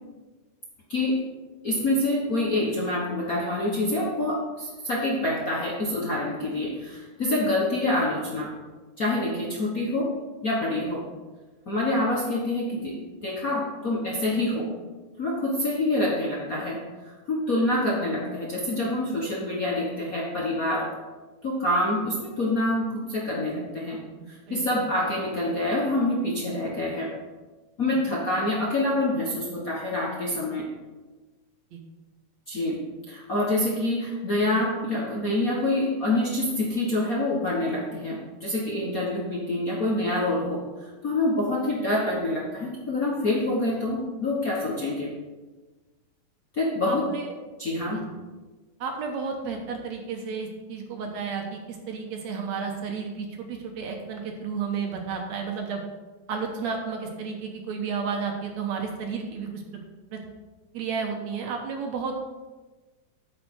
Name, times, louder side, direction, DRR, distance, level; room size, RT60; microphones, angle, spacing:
voice 1, 0.9-1.2 1.6-8.5 9.0-10.2 10.4-11.1 11.7-14.8 15.2-20.9 21.4-27.1 27.8-30.7 32.5-45.1 46.5-47.1 47.6-48.2, left 1 dB, 55° left, -4 dB, 1.0 m, -26 dB
voice 2, 46.9-47.3 47.9-48.0 48.8-55.8 56.3-59.6 60.1-60.2 60.7-62.1, right 5 dB, 65° right, 2 dB, 2.2 m, -32 dB
8.8 x 6.4 x 6.3 m, 1.2 s
omnidirectional pair, 3.6 m